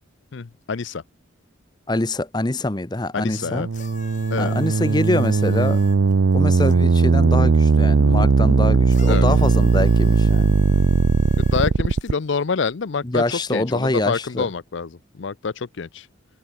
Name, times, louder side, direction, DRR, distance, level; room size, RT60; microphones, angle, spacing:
voice 1, 0.3-1.0 3.1-3.7 4.3-4.6 9.1-9.3 11.4-16.1, left 5 dB, 65° left, 0.5 m, -27 dB
voice 2, 1.9-3.7 4.4-5.8 6.3-10.6 13.0-14.5, left 2 dB, 20° left, 0.7 m, -24 dB
sound 1, 3.3-12.1, right 4 dB, 75° right, 0.5 m, -18 dB
sound 2, 3.7-6.8 8.9-12.1 13.1-13.2, left 7 dB, 35° left, 4.1 m, -45 dB
head